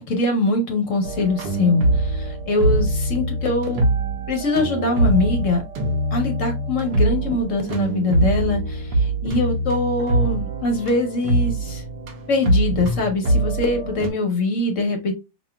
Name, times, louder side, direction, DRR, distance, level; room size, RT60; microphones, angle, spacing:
voice 1, 0.1-3.8 4.3-5.6 6.1-11.8 12.3-15.1, left 2 dB, 55° left, 3 dB, 0.9 m, -23 dB
sound 1, 1.0-14.1, right 1 dB, 65° right, 1.4 m, -23 dB
5.4 x 2.4 x 2.2 m, 0.26 s
omnidirectional pair, 2.1 m